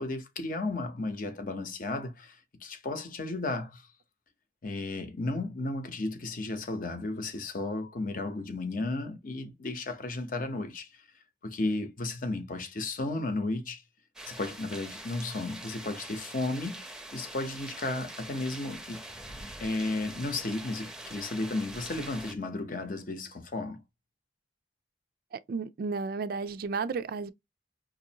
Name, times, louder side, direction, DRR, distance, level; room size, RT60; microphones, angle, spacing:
voice 1, 0.0-3.9 4.6-11.0 11.4-13.8 14.3-19.0 19.6-23.8, left 2 dB, 50° left, 0.8 m, -34 dB
sound 1, 14.2-22.3, right 1 dB, 5° right, 0.6 m, -44 dB
voice 2, 25.3-27.3, right 4 dB, 55° right, 0.3 m, -33 dB
5.1 x 2.5 x 2.8 m
head